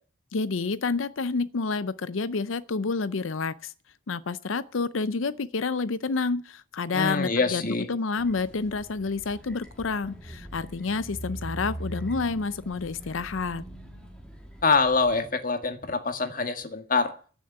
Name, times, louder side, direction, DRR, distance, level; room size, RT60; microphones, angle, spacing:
voice 1, 0.3-3.7 4.1-13.6, left 4 dB, 80° left, 0.6 m, -29 dB
voice 2, 6.9-7.9 14.6-17.1, left 4 dB, 40° left, 1.9 m, -25 dB
sound 1, 8.2-15.2, right 1 dB, 5° left, 2.4 m, -41 dB
15.5 x 7.2 x 9.9 m
head